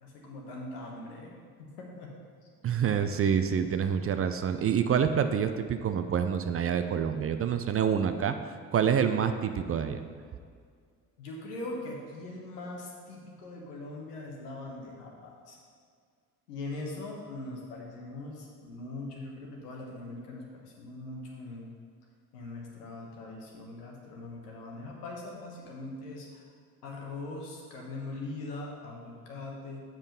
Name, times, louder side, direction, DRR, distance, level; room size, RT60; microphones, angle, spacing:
voice 1, 0.0-1.3 1.6-2.1 11.2-15.6 16.5-21.7 22.3-26.4 26.8-29.8, left 2 dB, 85° left, -1 dB, 1.3 m, -41 dB
voice 2, 2.6-8.4 8.7-10.0, right 7 dB, 30° right, 9 dB, 0.5 m, -27 dB
7.3 x 5.3 x 5.3 m, 2.1 s
hypercardioid pair, 50°, 46 cm